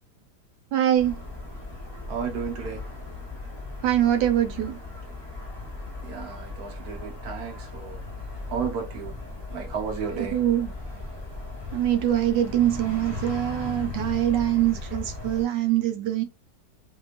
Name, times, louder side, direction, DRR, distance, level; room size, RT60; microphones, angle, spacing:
voice 1, 0.7-1.2 3.8-4.8 10.1-10.7 11.7-16.2, right 12 dB, 80° right, 1.3 m, -23 dB
sound 1, 1.0-15.4, left 3 dB, 20° right, 1.0 m, -37 dB
voice 2, 2.1-2.8 6.0-8.0 8.5-9.2 9.5-10.4, right 6 dB, 65° right, 1.4 m, -33 dB
3.3 x 3.0 x 2.5 m
omnidirectional pair, 1.9 m